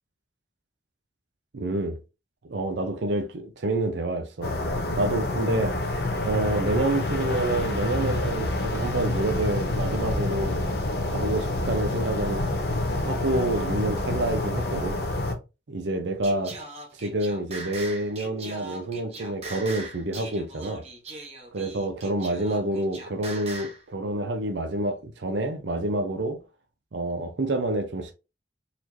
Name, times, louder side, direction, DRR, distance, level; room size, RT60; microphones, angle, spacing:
voice 1, 1.5-2.0 2.4-4.6 5.0-5.9 6.3-10.6 11.1-12.5 13.0-15.0 15.7-16.6 17.0-20.8 21.5-26.4 26.9-28.1, right 2 dB, 70° right, 0.6 m, -28 dB
sound 1, 4.4-15.3, left 2 dB, 55° left, 0.7 m, -27 dB
Singing, 16.2-23.8, right 2 dB, 35° right, 0.9 m, -40 dB
4.1 x 3.0 x 2.7 m
head